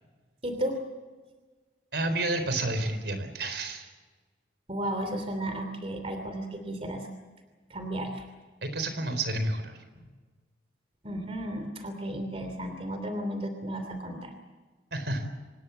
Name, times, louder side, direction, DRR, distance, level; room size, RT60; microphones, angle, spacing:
voice 1, 0.4-0.8 4.7-7.1 7.7-8.2 11.0-14.3, right 1 dB, 30° right, 6 dB, 2.9 m, -33 dB
voice 2, 1.9-3.9 8.6-9.8 14.9-15.3, right 2 dB, 65° right, 8 dB, 4.2 m, -30 dB
26.0 x 20.0 x 7.3 m, 1.3 s
head